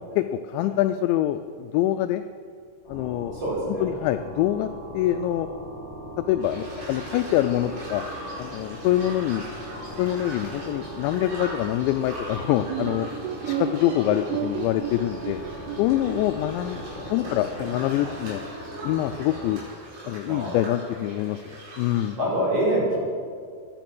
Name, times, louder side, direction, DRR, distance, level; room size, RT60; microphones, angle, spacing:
voice 1, 0.2-2.2 2.9-3.4 3.8-5.5 6.3-8.1 8.4-9.5 10.0-13.1 13.4-15.4 15.8-16.8 17.1-18.4 18.8-19.6 20.0-22.2, left 13 dB, 85° left, 8 dB, 2.6 m, -25 dB
sound 1, 2.8-19.6, equal, 25° left, 5.1 m, -39 dB
voice 2, 3.3-3.9 16.8-18.2 20.2-20.6 22.1-23.0, right 1 dB, 30° right, -5 dB, 5.0 m, -28 dB
sound 2, 6.4-22.1, right 1 dB, 70° right, 7.0 m, -41 dB
sound 3, 12.7-16.4, right 9 dB, 90° right, 3.2 m, -32 dB
23.5 x 10.0 x 6.1 m, 2.2 s
omnidirectional pair, 5.6 m